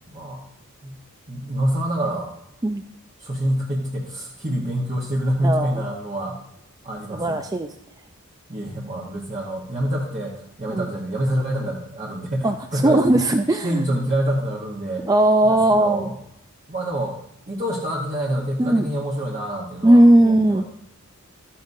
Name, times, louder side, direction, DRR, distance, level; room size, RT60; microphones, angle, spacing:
voice 1, 0.1-0.4 0.8-1.0 1.3-2.3 3.2-6.4 6.8-7.4 8.5-13.2 13.5-15.1 15.4-16.2 16.7-17.2 17.5-20.6, right 1 dB, 35° right, -3 dB, 1.2 m, -26 dB
voice 2, 5.4-5.7 7.1-7.7 10.7-10.9 12.4-12.5 12.8-13.9 15.0-16.2 18.6-18.9 19.8-20.6, right 1 dB, 15° right, 6 dB, 0.4 m, -17 dB
13.0 x 10.0 x 2.7 m, 0.80 s
head